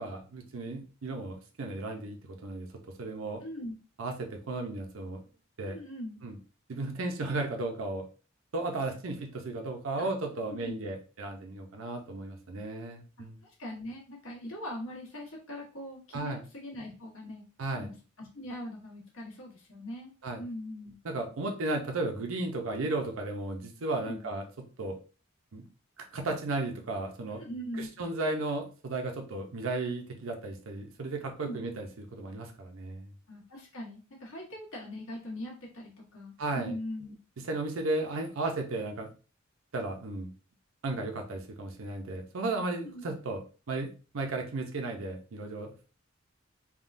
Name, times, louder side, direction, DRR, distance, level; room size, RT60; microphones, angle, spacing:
voice 1, 0.0-2.7 3.0-3.4 4.0-5.2 5.6-5.8 6.2-6.4 6.7-8.0 8.5-13.4 16.1-16.4 17.6-17.9 20.2-20.4 21.0-24.4 24.8-25.0 25.5-25.6 26.1-27.5 27.8-33.1 36.4-36.7 37.5-39.1 39.7-40.3 40.8-43.4 43.7-43.9 44.1-45.9, right 2 dB, 80° right, 3 dB, 0.6 m, -34 dB
voice 2, 3.4-3.8 5.7-6.2 10.0-10.1 10.4-10.8 13.6-17.4 17.8-20.1 20.4-21.0 24.0-24.3 27.3-27.9 31.4-31.6 33.3-37.1 42.8-43.0, left 1 dB, 75° left, -3 dB, 1.3 m, -41 dB
3.5 x 2.2 x 2.5 m, 0.35 s
head